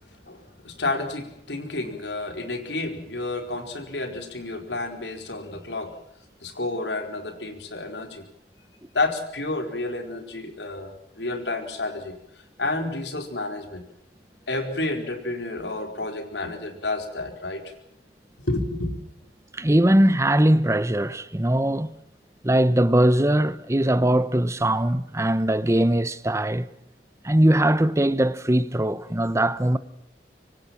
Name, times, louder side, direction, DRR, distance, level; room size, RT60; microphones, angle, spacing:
voice 1, 0.3-6.0 6.4-8.3 8.9-12.1 12.6-13.8 14.5-17.6 18.4-18.9, left 2 dB, 85° left, 4.7 m, -30 dB
voice 2, 19.5-21.9 22.4-26.7 27.2-29.8, right 1 dB, 15° right, 0.9 m, -21 dB
25.5 x 24.5 x 6.0 m
head